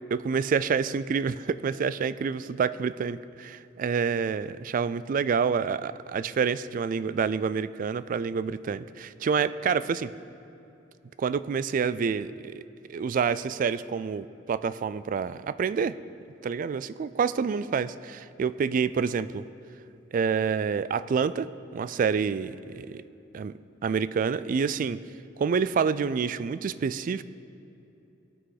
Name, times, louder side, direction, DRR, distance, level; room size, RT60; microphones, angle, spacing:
voice 1, 0.1-10.1 11.2-12.6 12.9-16.0 16.4-19.4 20.1-23.0 23.3-23.5 23.8-25.0 25.4-27.2, right 6 dB, 45° right, 16 dB, 0.3 m, -28 dB
18.0 x 6.2 x 4.8 m, 2.8 s
head